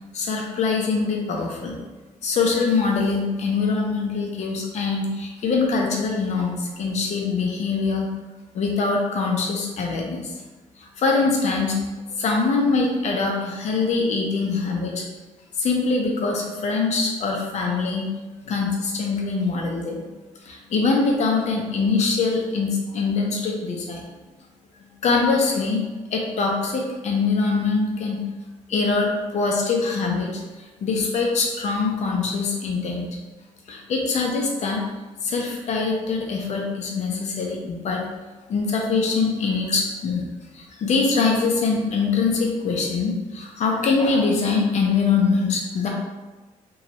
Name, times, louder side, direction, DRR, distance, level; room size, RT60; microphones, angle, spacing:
voice 1, 0.1-1.7 2.2-8.1 8.5-10.3 10.8-11.8 12.1-15.0 15.6-18.1 18.4-20.0 20.5-24.0 25.0-25.8 26.1-28.2 28.7-30.4 30.8-33.1 33.7-34.8 35.2-38.0 38.5-40.3 40.5-45.9, left 4 dB, 60° left, 0 dB, 0.6 m, -23 dB
3.0 x 2.3 x 2.9 m, 1.2 s
cardioid pair, 135°, 13 cm